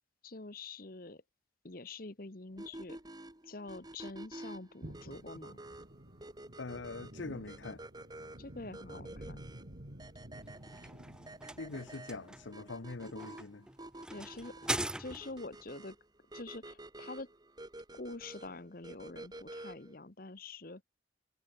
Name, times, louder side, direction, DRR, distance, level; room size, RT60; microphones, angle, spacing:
voice 1, 0.2-1.2 1.6-3.0 3.4-5.6 8.4-9.4 14.1-14.5 14.9-16.0 16.3-17.3 18.0-20.8, left 3 dB, 50° left, 1.3 m, -46 dB
sound 1, 2.6-20.0, right 1 dB, 20° right, 2.0 m, -50 dB
sound 2, 4.8-12.5, right 1 dB, 50° right, 2.6 m, -51 dB
voice 2, 6.6-7.8 11.6-13.7, left 3 dB, 80° left, 0.9 m, -43 dB
sound 3, 10.4-15.5, right 1 dB, 5° right, 0.6 m, -41 dB
head